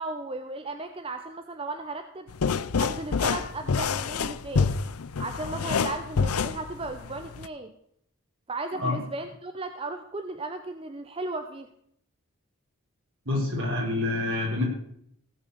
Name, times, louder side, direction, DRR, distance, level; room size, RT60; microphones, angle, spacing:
voice 1, 0.0-2.3 2.8-4.7 5.2-7.7 8.5-11.7, right 2 dB, 25° right, 7 dB, 0.6 m, -35 dB
sound 1, 2.3-7.5, left 5 dB, 90° left, 0.6 m, -27 dB
voice 2, 13.3-14.6, left 2 dB, 65° right, -3 dB, 5.8 m, -27 dB
16.5 x 6.1 x 7.0 m, 0.69 s
head